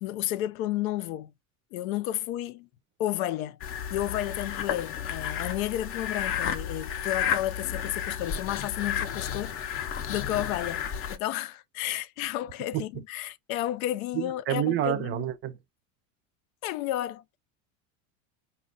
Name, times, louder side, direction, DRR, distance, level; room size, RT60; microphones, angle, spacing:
voice 1, 0.0-1.3 1.7-2.7 3.0-3.6 3.9-9.6 10.1-15.3 16.6-17.4, left 13 dB, 80° left, 0.5 m, -32 dB
sound 1, 3.6-11.2, left 8 dB, 35° left, 0.5 m, -32 dB
voice 2, 14.1-15.6, right 12 dB, 30° right, 0.5 m, -28 dB
4.3 x 2.2 x 3.8 m
supercardioid pair, 115°, 41 cm